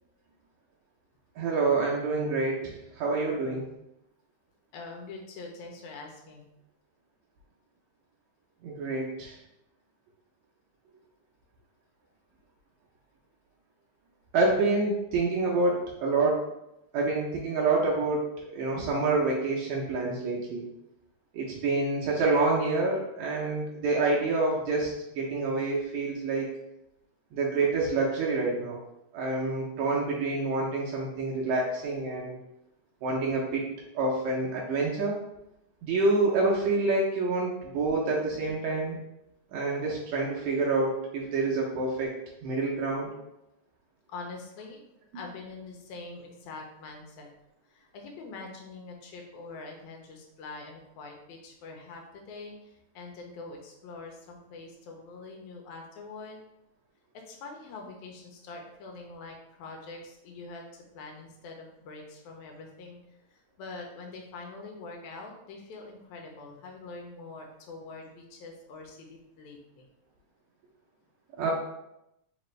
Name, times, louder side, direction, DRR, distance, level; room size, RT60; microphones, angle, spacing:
voice 1, 1.4-3.6 8.6-9.4 14.3-16.4 16.9-18.3 18.5-20.6 21.3-26.5 27.3-28.8 29.1-32.4 33.0-33.6 33.9-35.1 35.8-39.0 39.5-42.1 42.4-43.1 71.4-71.5, right 3 dB, 75° right, -3 dB, 1.9 m, -27 dB
voice 2, 4.7-6.5 44.1-44.8 45.1-47.3 47.7-56.4 57.3-63.0 63.3-69.9, left 3 dB, 80° left, 1 dB, 2.0 m, -44 dB
5.0 x 2.6 x 3.1 m, 0.86 s
omnidirectional pair, 3.4 m